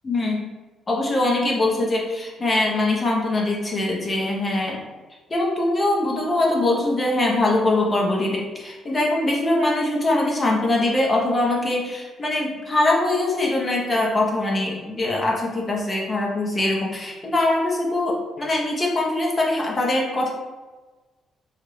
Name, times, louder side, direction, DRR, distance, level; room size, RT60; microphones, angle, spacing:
voice 1, 0.0-0.4 0.9-4.8 5.3-20.3, left 2 dB, 30° left, -2 dB, 0.7 m, -22 dB
3.0 x 2.4 x 3.0 m, 1.3 s
cardioid pair, 90°, 0 cm